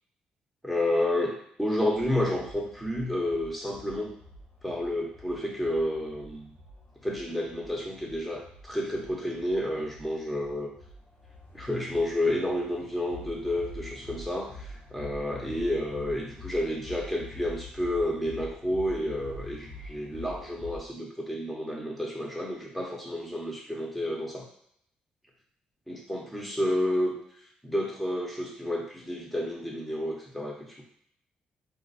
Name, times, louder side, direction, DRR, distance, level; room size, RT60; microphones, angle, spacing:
voice 1, 0.6-4.1 4.6-6.5 7.0-10.7 11.5-24.5 25.9-27.2 27.6-30.8, left 1 dB, 5° left, -1 dB, 1.0 m, -30 dB
sound 1, 1.9-20.8, left 1 dB, 55° left, 1.1 m, -46 dB
2.6 x 2.5 x 4.1 m, 0.68 s
cardioid pair, 75°, 3 cm